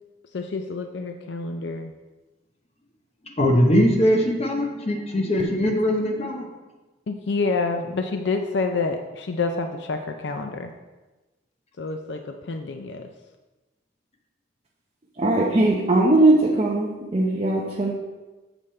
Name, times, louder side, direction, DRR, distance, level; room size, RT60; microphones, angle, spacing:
voice 1, 0.3-1.9 7.1-10.7 11.8-13.1, left 3 dB, 65° left, 6 dB, 0.5 m, -28 dB
voice 2, 3.4-6.5, equal, 35° left, 2 dB, 0.9 m, -21 dB
voice 3, 15.2-17.9, right 2 dB, 30° right, -3 dB, 0.8 m, -19 dB
7.6 x 5.0 x 4.3 m, 1.1 s
head